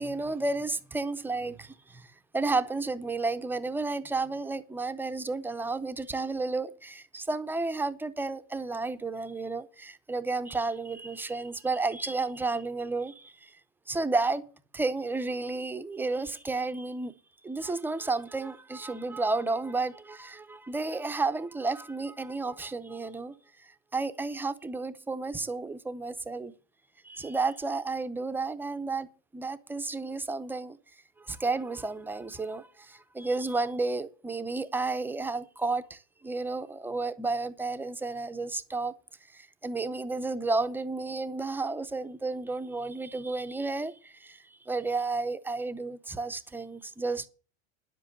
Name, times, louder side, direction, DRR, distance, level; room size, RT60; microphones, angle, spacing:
voice 1, 0.0-13.6 13.9-14.4 14.7-17.1 17.4-26.5 27.0-29.1 29.3-30.8 31.2-38.9 39.3-47.3, right 3 dB, 5° right, 0.6 m, -32 dB
10.5 x 7.7 x 8.3 m
supercardioid pair, 145°, 37 cm